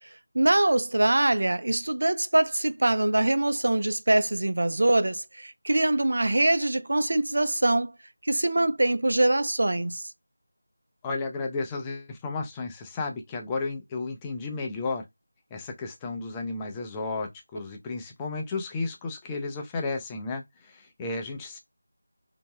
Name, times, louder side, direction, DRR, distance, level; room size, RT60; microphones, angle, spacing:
voice 1, 0.3-7.9 8.2-10.1, right 1 dB, 65° right, 0.3 m, -23 dB
voice 2, 11.0-15.0 15.5-21.6, left 3 dB, 10° left, 0.4 m, -33 dB
2.8 x 2.1 x 3.5 m
figure-of-eight pair, 170°, 0 cm